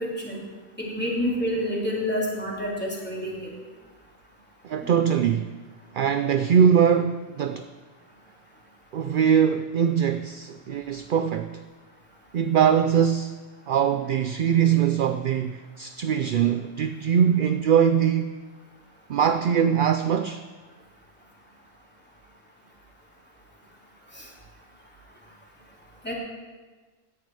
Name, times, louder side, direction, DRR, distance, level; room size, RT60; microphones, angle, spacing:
voice 1, 0.8-3.5 4.8-4.9 24.1-24.3 26.0-26.1, equal, 10° left, 3.3 m, -28 dB
voice 2, 4.6-5.5 5.9-7.7 8.9-11.6 12.3-13.4 13.7-18.3 19.1-20.4, right 8 dB, 60° right, 0.6 m, -22 dB
17.0 x 11.0 x 4.7 m
omnidirectional pair, 1.1 m